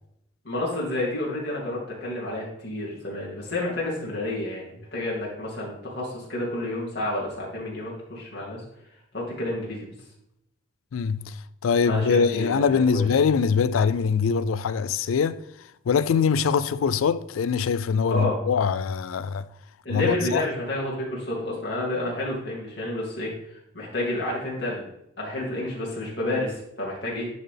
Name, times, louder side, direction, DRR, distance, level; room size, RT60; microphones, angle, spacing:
voice 1, 0.4-8.6 9.1-9.9 11.8-13.1 18.1-18.4 19.8-24.8 25.2-27.3, left 1 dB, 55° left, 2.7 m, -30 dB
voice 2, 10.9-15.4 15.9-19.5 19.9-20.4, left 6 dB, 90° left, 0.4 m, -23 dB
10.5 x 4.1 x 3.4 m
head